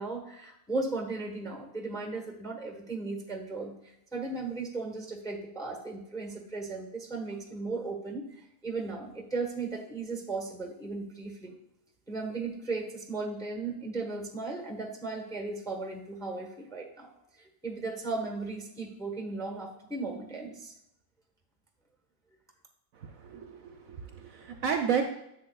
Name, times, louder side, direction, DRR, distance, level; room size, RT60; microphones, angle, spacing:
voice 1, 0.0-8.3 8.6-11.5 12.1-17.1 17.4-20.7, right 3 dB, 5° left, 2 dB, 0.9 m, -36 dB
voice 2, 23.2-25.0, right 7 dB, 65° right, 4 dB, 0.9 m, -31 dB
10.5 x 7.2 x 2.3 m, 0.83 s
omnidirectional pair, 1.8 m